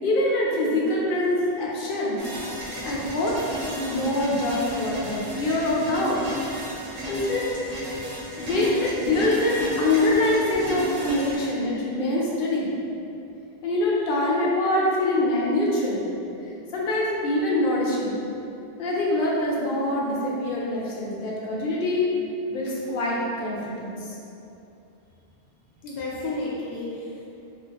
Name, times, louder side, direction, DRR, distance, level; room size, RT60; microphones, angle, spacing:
voice 1, 0.0-2.2 2.8-3.4 3.8-6.2 7.1-7.7 8.4-12.7 13.6-16.0 16.7-18.2 18.8-22.1 22.5-24.2, left 1 dB, 65° left, -4 dB, 0.8 m, -24 dB
sound 1, 2.2-11.4, left 1 dB, 40° right, 0.9 m, -33 dB
voice 2, 25.8-27.2, left 2 dB, 90° left, -6 dB, 0.8 m, -32 dB
3.4 x 2.4 x 2.8 m, 2.8 s
omnidirectional pair, 1.1 m